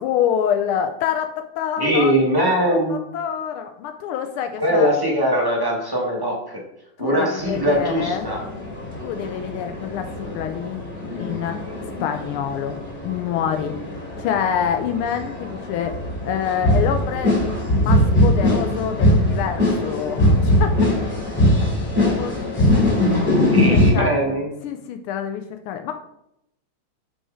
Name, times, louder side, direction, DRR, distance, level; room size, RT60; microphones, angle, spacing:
voice 1, 0.0-2.1 2.5-4.9 7.0-8.3 9.0-10.8 11.2-11.6 12.0-13.7 14.2-16.0 16.2-17.4 17.7-20.7 21.9-22.7 23.2-24.1 24.6-25.9, left 8 dB, 85° left, 6 dB, 1.4 m, -26 dB
voice 2, 1.8-3.1 4.6-6.6 7.0-8.4 23.5-24.6, equal, 15° right, -2 dB, 0.7 m, -21 dB
sound 1, 7.4-23.9, left 1 dB, 20° left, 2.7 m, -21 dB
5.4 x 4.4 x 4.8 m, 0.79 s
omnidirectional pair, 2.3 m